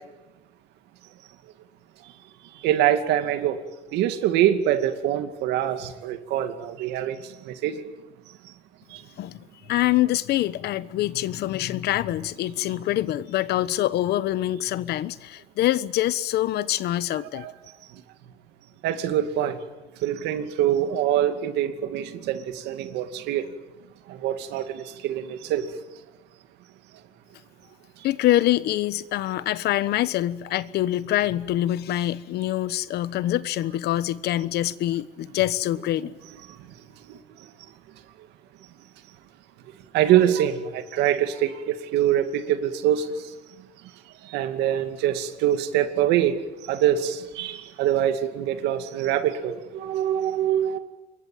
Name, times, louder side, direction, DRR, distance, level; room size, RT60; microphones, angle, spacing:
voice 1, 2.5-3.6 3.9-7.8 8.4-8.5 8.9-9.0 17.1-17.5 18.8-19.6 20.0-23.5 24.1-25.7 36.5-36.6 37.1-37.5 39.9-43.3 44.2-50.8, right 11 dB, 90° right, 2.4 m, -24 dB
voice 2, 9.7-17.5 28.0-36.1, left 14 dB, 75° left, 1.1 m, -25 dB
27.0 x 22.5 x 9.3 m
cardioid pair, 110°, 17 cm